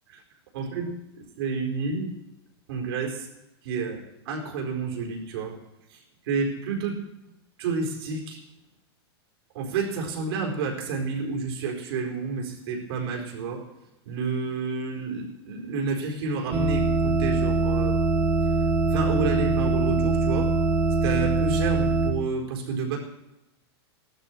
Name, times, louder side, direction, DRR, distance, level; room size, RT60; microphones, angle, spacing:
voice 1, 0.5-2.1 2.7-3.3 3.6-5.6 5.9-7.0 7.6-8.4 9.5-13.6 14.0-18.0 18.8-20.6 21.0-23.0, right 4 dB, 65° right, 0 dB, 4.4 m, -30 dB
sound 1, 16.5-22.1, right 3 dB, 15° right, 2.2 m, -23 dB
15.5 x 12.5 x 4.6 m, 0.93 s
supercardioid pair, 140°, 14 cm